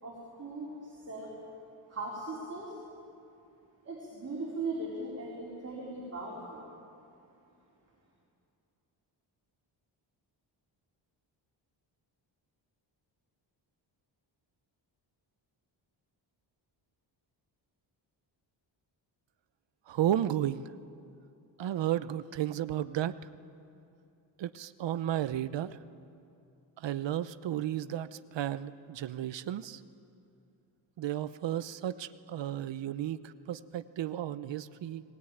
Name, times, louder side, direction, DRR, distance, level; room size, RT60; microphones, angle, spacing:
voice 1, 0.0-1.3 1.9-2.8 3.8-6.6, right 2 dB, 30° right, -5 dB, 4.2 m, -39 dB
voice 2, 19.9-20.7 21.6-23.1 24.4-25.8 26.8-29.8 31.0-35.0, right 11 dB, 70° right, 14 dB, 0.8 m, -33 dB
19.5 x 19.5 x 9.1 m, 2.7 s
wide cardioid pair, 140°, 46 cm